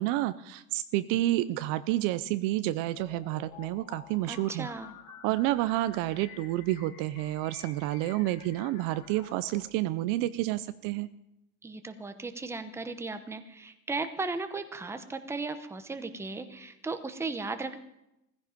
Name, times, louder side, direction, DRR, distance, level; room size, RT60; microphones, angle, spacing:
voice 1, 0.0-4.7 5.2-11.1, right 15 dB, 50° right, 14 dB, 0.6 m, -29 dB
sound 1, 3.0-9.7, left 8 dB, 85° left, 2.6 m, -51 dB
voice 2, 4.3-4.9 11.6-17.8, right 3 dB, 5° right, 9 dB, 0.8 m, -36 dB
17.0 x 15.5 x 5.2 m, 0.87 s
supercardioid pair, 145°, 42 cm